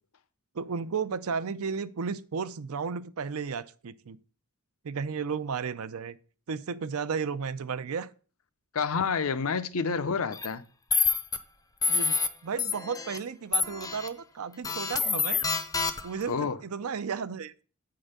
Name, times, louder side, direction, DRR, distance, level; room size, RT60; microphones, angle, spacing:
voice 1, 0.5-4.2 4.8-6.2 6.5-8.1 11.9-12.1 12.4-15.4 16.0-17.6, right 6 dB, 70° right, 0.5 m, -33 dB
voice 2, 8.7-10.6 16.3-16.6, left 5 dB, 65° left, 0.6 m, -28 dB
sound 1, 10.3-10.5 10.9-11.4 11.8-12.3 12.6-13.2 13.5-14.1 14.6-16.2, left 5 dB, 15° left, 0.6 m, -27 dB
8.8 x 3.8 x 6.5 m
head